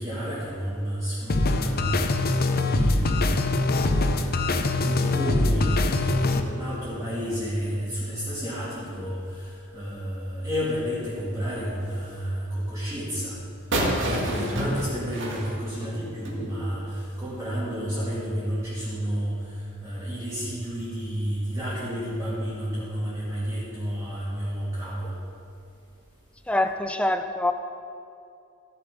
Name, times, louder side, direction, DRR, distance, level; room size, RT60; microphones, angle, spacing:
voice 1, 0.0-3.4 3.9-13.3 14.0-19.3 19.8-25.1, equal, 15° right, -12 dB, 2.7 m, -31 dB
sound 1, 1.3-6.4, left 2 dB, 45° left, 0.6 m, -23 dB
sound 2, 13.7-16.4, right 1 dB, 60° right, 2.0 m, -28 dB
voice 2, 14.3-14.8 26.5-27.5, left 1 dB, 5° left, 7 dB, 0.4 m, -26 dB
15.0 x 7.2 x 5.1 m, 2.5 s
head